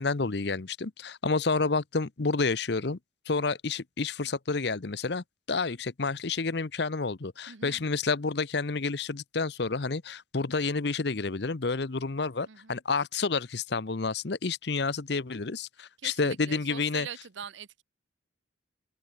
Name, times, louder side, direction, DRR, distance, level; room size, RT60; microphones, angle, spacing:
voice 1, 0.0-3.0 3.3-17.1, left 4 dB, 60° left, 0.8 m, -29 dB
voice 2, 7.5-7.9 12.5-12.7 16.0-17.8, right 7 dB, 75° right, 0.8 m, -43 dB
open air
head